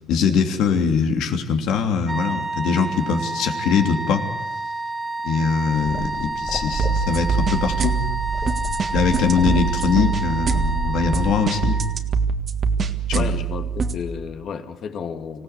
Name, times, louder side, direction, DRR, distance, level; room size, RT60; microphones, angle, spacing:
voice 1, 0.1-4.2 5.2-7.9 8.9-11.8 13.1-13.2, left 5 dB, 80° left, 4 dB, 3.0 m, -22 dB
sound 1, 2.0-12.0, right 3 dB, 15° right, 2.0 m, -29 dB
sound 2, 5.8-11.3, left 1 dB, 10° left, 1.7 m, -33 dB
sound 3, 6.7-14.0, right 5 dB, 40° right, 1.7 m, -24 dB
voice 2, 13.1-15.4, left 6 dB, 55° left, 7 dB, 2.2 m, -32 dB
25.5 x 16.5 x 8.3 m, 1.0 s
cardioid pair, 110°, 0 cm